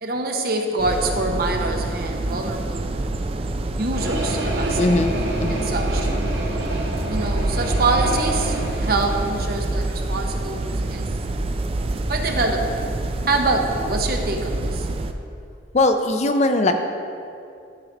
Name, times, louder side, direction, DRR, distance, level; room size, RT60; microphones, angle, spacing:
voice 1, 0.0-2.9 3.8-4.8 5.5-6.1 7.1-11.0 12.1-12.9 13.3-14.9, right 3 dB, 55° right, 3 dB, 0.8 m, -25 dB
sound 1, 0.8-15.1, right 2 dB, 30° right, 0.4 m, -26 dB
sound 2, 3.9-9.3, right 1 dB, 75° right, 1.5 m, -28 dB
voice 2, 4.8-5.7 15.7-16.7, left 2 dB, 40° left, 6 dB, 0.5 m, -20 dB
13.0 x 4.7 x 3.9 m, 2.5 s
head